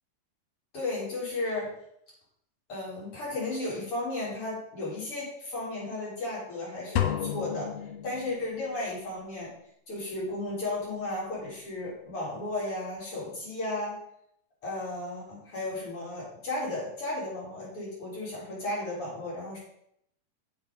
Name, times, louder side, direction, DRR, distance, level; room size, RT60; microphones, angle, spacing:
voice 1, 0.7-1.7 2.7-7.7 8.0-9.5 9.9-14.0 14.6-19.6, left 2 dB, 30° left, -6 dB, 4.5 m, -34 dB
sound 1, 7.0-8.8, left 10 dB, 80° left, 2.3 m, -31 dB
7.7 x 7.1 x 5.3 m, 0.73 s
omnidirectional pair, 5.3 m